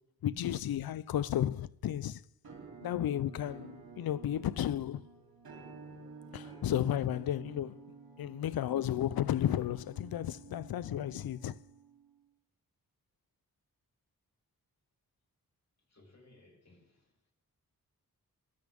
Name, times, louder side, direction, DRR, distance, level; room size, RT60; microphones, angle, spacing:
voice 1, 0.2-2.2 2.8-5.0 6.3-7.8 8.2-11.6, left 11 dB, 85° left, 0.5 m, -33 dB
Musical instrument, 2.4-12.2, right 4 dB, 85° right, 2.8 m, -52 dB
voice 2, 15.8-17.3, left 2 dB, 50° left, 3.6 m, -62 dB
20.5 x 12.0 x 3.5 m
wide cardioid pair, 95°, 35 cm